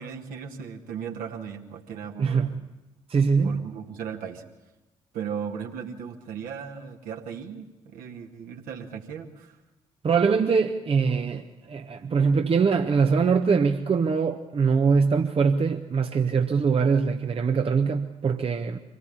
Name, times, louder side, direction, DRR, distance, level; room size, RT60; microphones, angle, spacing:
voice 1, 0.0-2.5 3.4-4.4 5.1-9.6, right 7 dB, 60° right, 2.2 m, -37 dB
voice 2, 2.2-2.6 3.1-3.6 10.0-18.8, right 5 dB, 35° right, 1.2 m, -23 dB
25.0 x 18.0 x 8.8 m
figure-of-eight pair, 45°, 16 cm